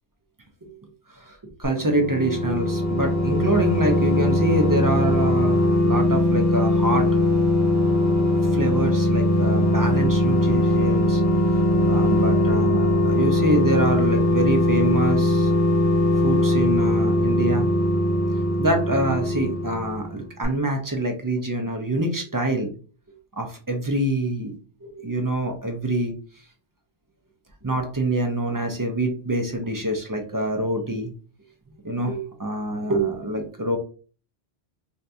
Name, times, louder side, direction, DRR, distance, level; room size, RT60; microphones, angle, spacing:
voice 1, 1.3-7.1 8.5-11.2 11.9-15.5 16.2-17.7 18.6-22.7 23.4-26.1 27.6-31.1 31.8-33.8, right 1 dB, 25° right, 3 dB, 0.4 m, -25 dB
sound 1, 1.6-20.1 20.4-20.5, left 1 dB, 20° left, 0.7 m, -20 dB
2.8 x 2.6 x 3.4 m, 0.38 s
omnidirectional pair, 1.1 m